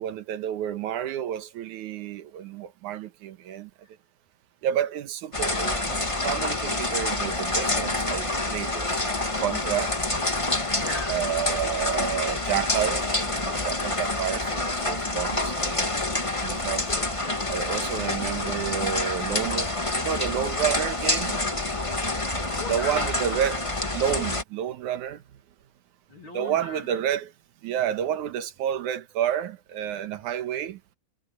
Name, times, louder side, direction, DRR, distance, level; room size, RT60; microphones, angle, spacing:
voice 1, 0.0-3.7 4.6-9.0 9.4-9.9 11.1-15.9 16.4-16.9 17.5-21.4 22.7-23.7 23.9-25.2 26.3-27.3 27.6-30.8, right 10 dB, 70° right, 2.6 m, -30 dB
sound 1, 5.3-24.4, left 2 dB, 20° left, 0.8 m, -27 dB
voice 2, 10.6-11.3 16.8-17.5 22.4-23.1 26.1-27.0, left 3 dB, 40° left, 3.0 m, -39 dB
omnidirectional pair, 3.7 m